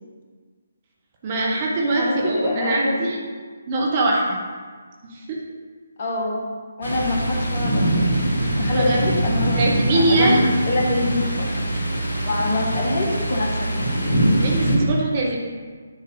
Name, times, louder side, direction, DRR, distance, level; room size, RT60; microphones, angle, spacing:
voice 1, 1.2-3.2 3.7-4.4 5.0-5.4 6.9-7.0 8.4-9.0 9.5-10.4 14.4-15.4, right 2 dB, 30° right, -2 dB, 1.1 m, -23 dB
voice 2, 1.9-3.1 6.0-8.0 8.6-9.6 9.9-11.5 12.2-13.8, left 1 dB, 40° left, -1 dB, 1.5 m, -24 dB
Thunder, 6.8-14.8, right 1 dB, 65° left, 2.2 m, -23 dB
9.9 x 4.1 x 5.3 m, 1.5 s
figure-of-eight pair, 145°, 0 cm